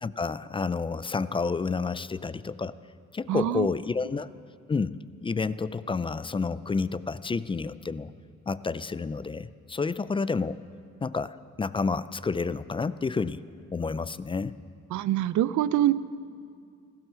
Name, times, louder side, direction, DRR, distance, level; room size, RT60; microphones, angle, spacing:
voice 1, 0.0-2.8 3.1-4.3 4.7-8.1 8.5-10.6 11.0-13.4 13.7-14.6, left 4 dB, 20° left, 16 dB, 0.3 m, -30 dB
voice 2, 3.3-3.7 14.9-15.9, right 13 dB, 75° right, 16 dB, 0.6 m, -24 dB
15.0 x 12.5 x 6.8 m, 2.2 s
cardioid pair, 90°, 30 cm